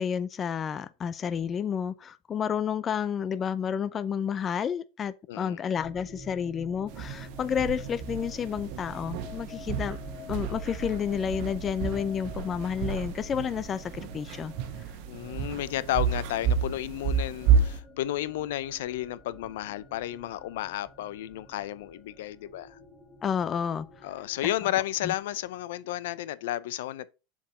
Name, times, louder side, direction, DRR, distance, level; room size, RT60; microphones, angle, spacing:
voice 1, 0.0-10.0 10.3-14.5 23.2-23.9 25.0-25.1, left 7 dB, 25° left, 0.4 m, -30 dB
voice 2, 5.3-5.6 15.1-22.8 24.0-27.1, left 14 dB, 75° left, 0.6 m, -32 dB
sound 1, 5.8-25.6, left 2 dB, 5° left, 2.7 m, -48 dB
sound 2, 6.9-17.8, right 6 dB, 55° right, 1.1 m, -30 dB
7.4 x 4.8 x 4.2 m
supercardioid pair, 150°, 0 cm